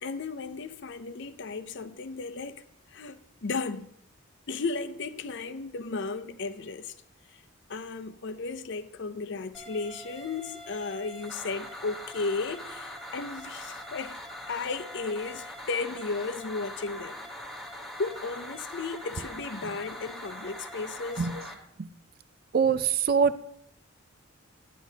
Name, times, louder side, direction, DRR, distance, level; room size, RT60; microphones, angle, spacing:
voice 1, 0.0-2.6 2.9-3.9 4.5-6.9 7.3-7.4 7.7-14.2 14.5-17.2 18.0-21.3, left 4 dB, 55° left, 0.5 m, -34 dB
sound 1, 9.5-21.5, left 1 dB, ahead, 1.1 m, -42 dB
voice 2, 22.5-23.4, right 6 dB, 45° right, 0.4 m, -24 dB
10.5 x 10.0 x 2.8 m
head